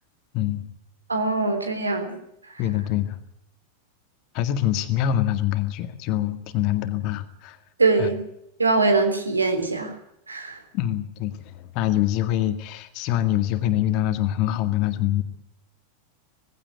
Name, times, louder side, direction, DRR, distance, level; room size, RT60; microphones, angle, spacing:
voice 1, 0.3-0.7 2.6-3.2 4.3-7.6 8.0-8.1 10.7-15.2, left 12 dB, 40° left, 10 dB, 1.9 m, -25 dB
voice 2, 1.1-2.2 7.8-8.2 8.6-9.9 10.3-10.6, right 3 dB, 80° right, 7 dB, 3.4 m, -22 dB
18.5 x 16.0 x 9.3 m, 0.78 s
figure-of-eight pair, 90°, 0 cm